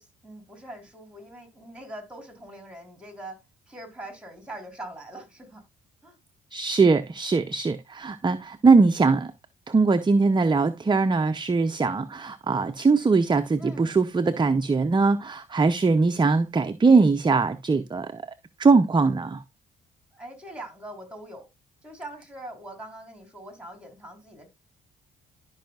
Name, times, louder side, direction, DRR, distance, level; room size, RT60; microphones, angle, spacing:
voice 1, 0.0-5.6 6.0-6.2 13.6-14.0 20.1-21.5 21.8-24.5, right 1 dB, 5° right, 4.4 m, -42 dB
voice 2, 6.5-9.3 9.7-18.2 18.6-19.4, right 4 dB, 20° right, 0.7 m, -21 dB
12.5 x 5.6 x 2.4 m
supercardioid pair, 70°, 21 cm